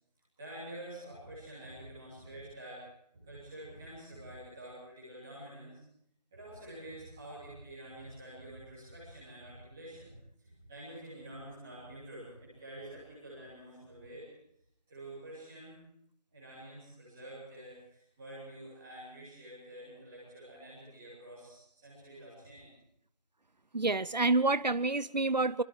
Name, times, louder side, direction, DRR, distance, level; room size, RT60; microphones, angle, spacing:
voice 1, 0.4-2.8 3.1-5.8 6.3-14.2 14.9-15.8 16.3-22.7, right 1 dB, 5° right, 3.1 m, -48 dB
voice 2, 23.7-25.6, right 3 dB, 85° right, 0.8 m, -28 dB
25.5 x 25.0 x 4.7 m
figure-of-eight pair, 175°, 21 cm